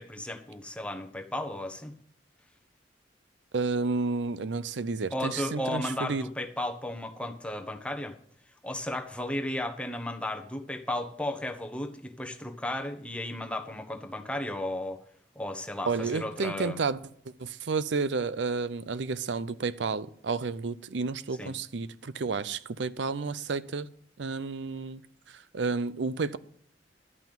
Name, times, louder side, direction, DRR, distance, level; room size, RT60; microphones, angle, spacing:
voice 1, 0.0-1.9 5.1-8.1 8.6-15.0 15.3-16.8 21.4-21.5, left 1 dB, 5° left, 1.3 m, -34 dB
voice 2, 3.5-6.2 15.9-17.0 17.4-23.9 24.2-25.0 25.5-26.4, right 4 dB, 75° right, 0.6 m, -31 dB
12.0 x 5.8 x 9.0 m
head